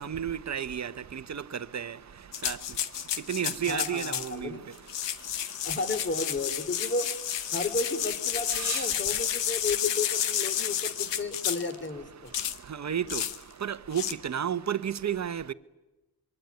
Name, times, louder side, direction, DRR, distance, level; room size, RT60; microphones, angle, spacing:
voice 1, 0.0-1.4 1.7-1.9 2.4-2.6 3.3-4.5 8.6-8.8 12.8-13.2 13.6-15.5, right 8 dB, 40° right, 1.2 m, -32 dB
sound 1, 2.3-4.3 4.8-11.7 12.3-12.6 13.1-13.4 13.9-14.1, left 10 dB, 85° left, 1.5 m, -31 dB
voice 2, 3.7-4.6 5.6-7.1 7.5-12.3, left 3 dB, 25° left, 3.3 m, -33 dB
26.0 x 23.5 x 9.3 m
cardioid pair, 100°, 42 cm